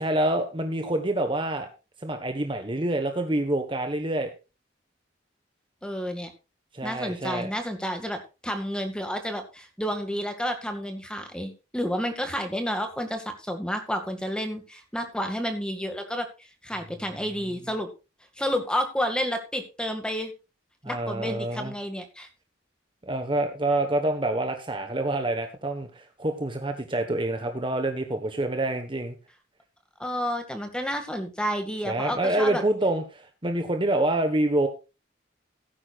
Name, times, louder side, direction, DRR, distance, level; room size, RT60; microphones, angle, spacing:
voice 1, 0.0-1.7 2.0-4.3 6.7-7.5 20.8-21.7 23.0-29.2 31.8-34.7, right 1 dB, 25° right, 6 dB, 1.3 m, -27 dB
voice 2, 5.8-6.3 6.8-16.3 16.6-17.9 18.4-20.3 20.9-22.3 30.0-32.6, equal, 5° left, 5 dB, 2.0 m, -30 dB
17.5 x 9.8 x 2.5 m, 0.29 s
head